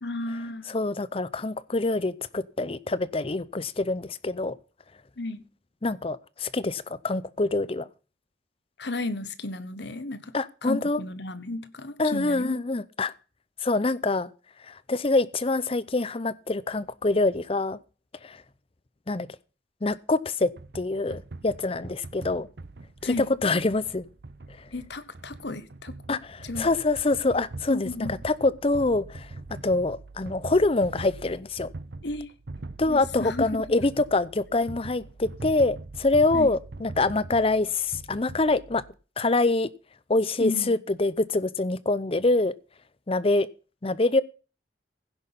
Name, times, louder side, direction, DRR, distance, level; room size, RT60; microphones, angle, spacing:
voice 1, 0.0-0.7 5.2-5.4 8.8-10.3 10.6-12.6 23.0-23.3 24.7-26.7 27.7-28.1 32.0-32.3 32.9-33.5 36.3-36.5 40.4-40.8, left 2 dB, 65° left, 1.3 m, -33 dB
voice 2, 0.7-4.6 5.8-7.9 10.3-11.0 12.0-13.1 13.6-14.3 14.7-17.8 18.2-18.4 19.1-19.3 19.8-22.5 23.0-24.1 26.1-31.7 32.8-38.8 39.2-39.7 40.1-42.5 43.1-43.5 43.8-44.2, left 2 dB, 30° left, 0.6 m, -25 dB
sound 1, 20.6-38.9, right 2 dB, 60° right, 0.7 m, -42 dB
16.0 x 6.3 x 5.5 m
head